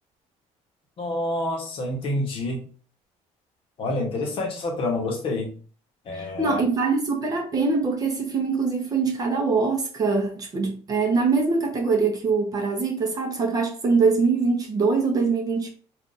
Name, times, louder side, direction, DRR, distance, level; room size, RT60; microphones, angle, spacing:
voice 1, 1.0-2.6 3.8-5.5 6.1-6.6, left 2 dB, 45° left, 0.9 m, -27 dB
voice 2, 6.1-15.7, right 4 dB, 30° right, 0.6 m, -23 dB
2.4 x 2.3 x 3.9 m
cardioid pair, 165°, 13 cm